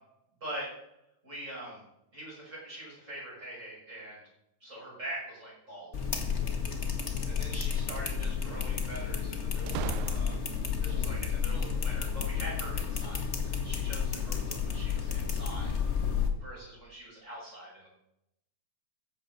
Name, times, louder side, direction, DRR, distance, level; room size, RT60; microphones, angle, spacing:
voice 1, 1.2-1.8 2.1-4.2 4.6-5.9 6.4-6.5 7.3-10.4 10.8-15.7 16.4-17.9, right 1 dB, 25° right, -5 dB, 6.4 m, -43 dB
sound 1, 5.9-16.3, left 7 dB, 40° left, 1.0 m, -31 dB
sound 2, 6.2-7.2 9.7-10.7, right 13 dB, 90° right, 2.0 m, -40 dB
14.5 x 7.3 x 6.6 m, 0.83 s
omnidirectional pair, 3.3 m